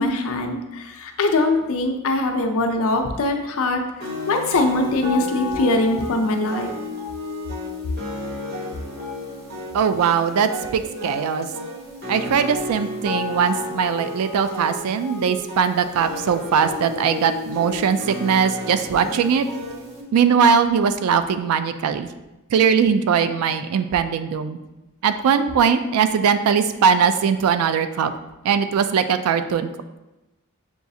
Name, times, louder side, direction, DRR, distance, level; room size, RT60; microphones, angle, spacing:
voice 1, 0.0-3.8 4.3-6.7, left 2 dB, 70° left, 4 dB, 0.5 m, -22 dB
sound 1, 4.0-20.0, left 2 dB, 50° right, 0.9 m, -32 dB
voice 2, 9.7-11.5 12.1-19.4 20.1-22.1 22.5-24.6 25.0-28.1 28.4-29.7, right 7 dB, 80° right, 10 dB, 0.3 m, -20 dB
6.8 x 2.4 x 2.7 m, 1.0 s
head